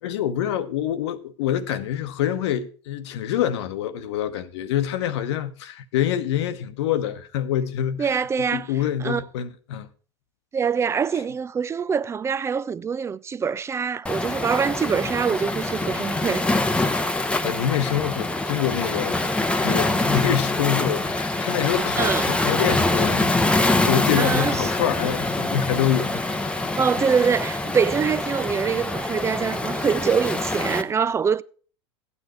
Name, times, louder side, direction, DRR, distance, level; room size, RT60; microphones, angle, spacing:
voice 1, 0.0-9.9 17.4-26.5, left 10 dB, 65° left, 1.0 m, -26 dB
voice 2, 8.0-8.7 9.0-9.2 10.5-16.5 22.0-22.3 24.2-24.7 26.8-31.4, right 6 dB, 20° right, 0.4 m, -24 dB
Waves surf, 14.1-30.8, left 2 dB, 5° left, 0.8 m, -24 dB
14.5 x 9.6 x 3.0 m
hypercardioid pair, 90°, 15 cm